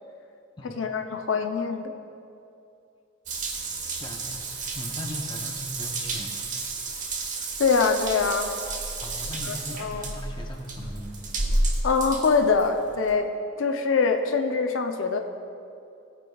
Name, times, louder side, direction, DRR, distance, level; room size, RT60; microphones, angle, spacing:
voice 1, 0.6-1.9 7.6-8.5 9.5-10.0 11.8-13.3 13.6-15.2, left 4 dB, 80° left, 5 dB, 0.6 m, -24 dB
Water tap faucet / Bathtub (filling or washing) / Drip, 3.3-13.1, right 2 dB, 40° right, 1.1 m, -31 dB
voice 2, 4.0-6.5 9.0-11.2, left 1 dB, 25° left, 3 dB, 0.8 m, -38 dB
17.5 x 9.3 x 2.3 m, 2.7 s
head